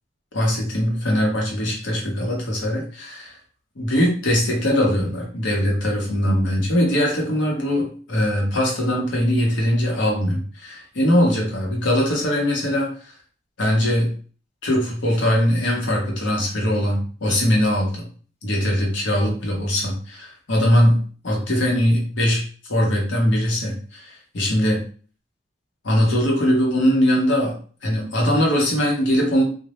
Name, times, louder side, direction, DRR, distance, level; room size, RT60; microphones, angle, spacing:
voice 1, 0.3-3.3 3.8-13.1 13.6-14.1 14.6-18.1 18.4-21.0 21.2-22.4 22.7-24.8 25.8-27.5 27.8-29.4, equal, 80° left, -1 dB, 0.8 m, -21 dB
2.1 x 2.0 x 2.9 m, 0.42 s
head